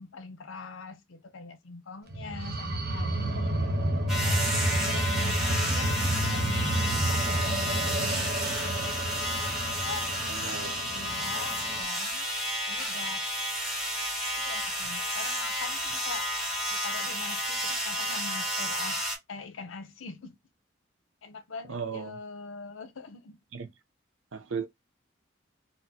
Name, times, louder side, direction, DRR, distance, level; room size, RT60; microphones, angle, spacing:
voice 1, 0.0-3.9 4.7-6.0 6.3-9.0 9.8-12.3 12.7-13.3 14.4-16.3 16.7-19.0 19.3-20.4 21.2-23.4, left 4 dB, 85° left, 0.7 m, -43 dB
sound 1, 2.1-11.8, right 1 dB, 50° right, 0.9 m, -30 dB
sound 2, 4.1-19.2, equal, ahead, 1.1 m, -31 dB
voice 2, 10.3-10.8 21.7-22.2 23.5-23.7 24.3-24.7, right 6 dB, 85° right, 0.7 m, -36 dB
4.0 x 2.1 x 2.8 m
head